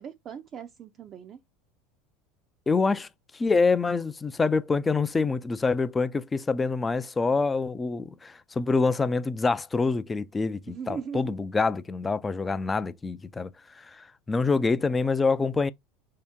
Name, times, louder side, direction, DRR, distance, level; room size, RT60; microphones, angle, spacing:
voice 1, 0.0-1.4 10.7-11.4, right 7 dB, 40° right, 0.5 m, -39 dB
voice 2, 2.7-3.1 3.3-15.7, left 4 dB, 20° left, 0.4 m, -26 dB
4.2 x 2.8 x 3.5 m
hypercardioid pair, 95°, 0 cm